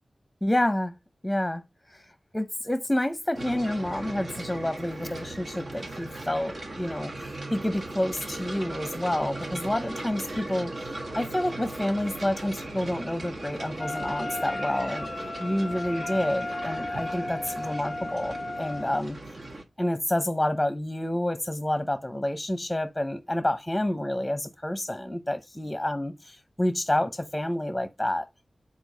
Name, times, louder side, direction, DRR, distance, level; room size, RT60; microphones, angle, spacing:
voice 1, 0.4-0.9 1.2-1.6 2.3-7.1 7.5-10.7 11.1-19.2 19.8-28.2, left 1 dB, 10° left, 0.8 m, -29 dB
sound 1, 3.3-19.6, right 2 dB, 70° right, 1.4 m, -38 dB
Wind instrument woodwind instrument, 13.8-19.0, left 2 dB, 40° left, 0.4 m, -34 dB
4.6 x 4.2 x 5.2 m
wide cardioid pair, 60°, 0 cm